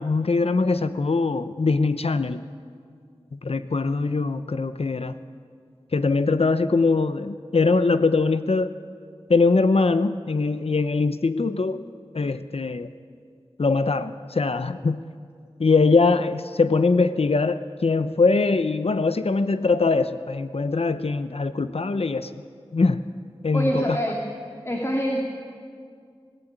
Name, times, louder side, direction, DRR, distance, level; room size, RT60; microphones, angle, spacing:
voice 1, 0.0-2.4 3.3-5.1 5.9-8.7 9.3-11.8 12.1-12.9 13.6-15.0 15.6-22.4 22.7-23.0 23.4-24.0, left 3 dB, 70° left, 11 dB, 0.8 m, -22 dB
voice 2, 23.5-24.2 24.6-25.2, equal, 25° left, -1 dB, 2.7 m, -25 dB
26.0 x 16.5 x 8.9 m, 2.2 s
wide cardioid pair, 60°, 11 cm